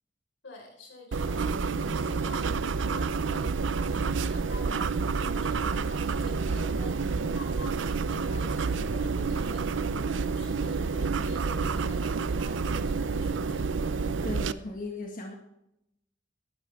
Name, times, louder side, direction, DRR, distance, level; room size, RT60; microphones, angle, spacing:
voice 1, 0.4-1.6 1.9-13.7, left 2 dB, 85° left, 1 dB, 4.7 m, -48 dB
sound 1, 1.1-14.5, right 4 dB, 90° right, 0.6 m, -29 dB
voice 2, 14.2-15.3, left 2 dB, 45° left, 1 dB, 1.7 m, -36 dB
18.0 x 12.5 x 3.5 m, 0.82 s
head